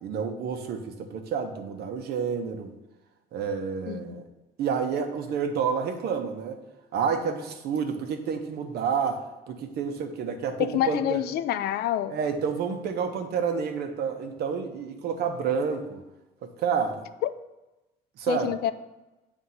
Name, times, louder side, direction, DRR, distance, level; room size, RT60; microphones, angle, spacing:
voice 1, 0.0-2.7 3.3-4.2 4.6-6.6 6.9-9.2 9.5-11.2 12.1-16.0 16.4-17.0 18.2-18.5, right 6 dB, 70° right, 6 dB, 1.0 m, -29 dB
voice 2, 3.9-4.2 10.6-12.2 17.2-17.3 18.3-18.7, left 11 dB, 70° left, 13 dB, 0.4 m, -27 dB
7.9 x 3.6 x 5.6 m, 1.0 s
cardioid pair, 110°, 17 cm